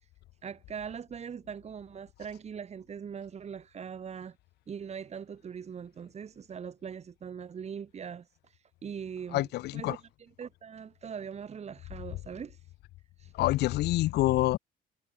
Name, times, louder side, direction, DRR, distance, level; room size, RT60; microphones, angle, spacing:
voice 1, 0.4-4.4 4.7-12.6 13.2-13.3, right 7 dB, 40° right, 5.3 m, -41 dB
voice 2, 9.3-10.0 13.4-14.6, left 17 dB, 75° left, 0.8 m, -26 dB
cardioid pair, 110°, 17 cm